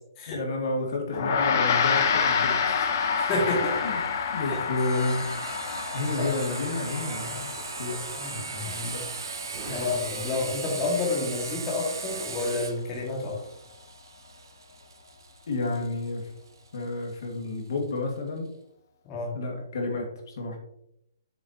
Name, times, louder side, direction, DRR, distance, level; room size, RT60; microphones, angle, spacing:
voice 1, 0.3-3.0 3.8-4.0 4.3-5.3 5.9-8.1 8.6-9.1 9.7-9.9 15.5-16.3 16.7-18.5 19.3-20.6, left 2 dB, 65° left, 1 dB, 2.1 m, -31 dB
Gong, 1.1-10.8, left 6 dB, 45° left, 1.0 m, -28 dB
Sawing, 1.7-17.1, right 5 dB, 90° right, 0.9 m, -39 dB
voice 2, 3.2-3.8 4.4-4.6 6.2-6.3 8.2-9.0 9.7-13.4 19.1-19.4, left 3 dB, 20° left, -3 dB, 2.1 m, -29 dB
sound 1, 6.2-11.3, right 2 dB, 25° right, 2.8 m, -46 dB
7.4 x 7.3 x 2.9 m, 0.76 s
hypercardioid pair, 165°, 2 cm